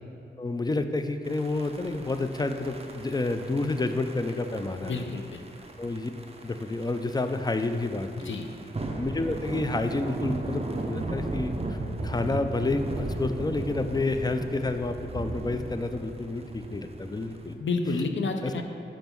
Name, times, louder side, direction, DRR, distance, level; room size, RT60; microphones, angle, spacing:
voice 1, 0.4-5.0 5.8-6.1 6.4-8.3 9.0-11.5 12.0-17.6 18.4-18.6, left 2 dB, 20° left, 8 dB, 0.4 m, -29 dB
sound 1, 1.2-17.5, right 2 dB, 30° right, 0.6 m, -36 dB
voice 2, 4.8-5.4 8.2-8.5 17.6-18.6, left 3 dB, 70° left, 5 dB, 0.6 m, -30 dB
5.4 x 5.1 x 6.0 m, 2.7 s
wide cardioid pair, 95°, 20 cm